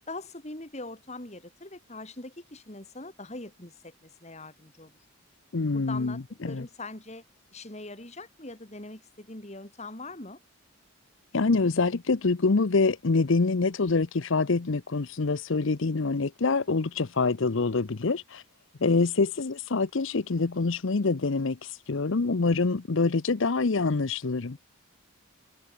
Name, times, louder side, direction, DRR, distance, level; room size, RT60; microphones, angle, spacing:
voice 1, 0.1-4.9 5.7-7.2 7.5-10.4, left 2 dB, 30° left, 2.7 m, -42 dB
voice 2, 5.5-6.7 11.3-18.4 18.8-24.6, left 3 dB, 60° left, 0.7 m, -26 dB
head